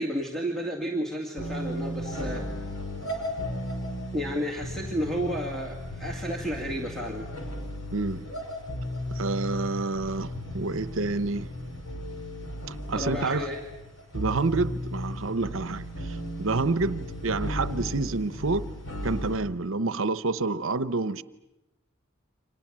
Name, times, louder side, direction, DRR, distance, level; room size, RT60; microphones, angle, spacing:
voice 1, 0.0-2.4 4.1-7.3 12.9-13.6, equal, ahead, 2.3 m, -32 dB
sound 1, 1.4-19.4, equal, 65° left, 5.6 m, -35 dB
voice 2, 7.9-8.2 9.1-11.5 12.7-13.5 14.1-18.7 19.0-21.2, right 3 dB, 65° right, 0.9 m, -28 dB
30.0 x 26.0 x 7.6 m
head